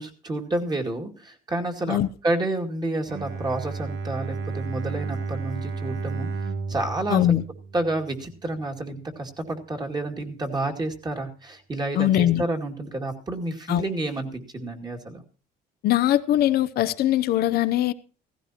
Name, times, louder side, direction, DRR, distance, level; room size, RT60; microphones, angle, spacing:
voice 1, 0.0-6.3 6.7-7.4 7.7-15.2, right 2 dB, 25° right, 2.3 m, -30 dB
Bowed string instrument, 3.1-8.3, right 4 dB, 80° right, 1.5 m, -32 dB
voice 2, 7.1-7.4 12.0-12.4 13.7-13.9 15.8-17.9, left 13 dB, 70° left, 0.6 m, -21 dB
16.0 x 15.0 x 2.9 m
cardioid pair, 110°, 17 cm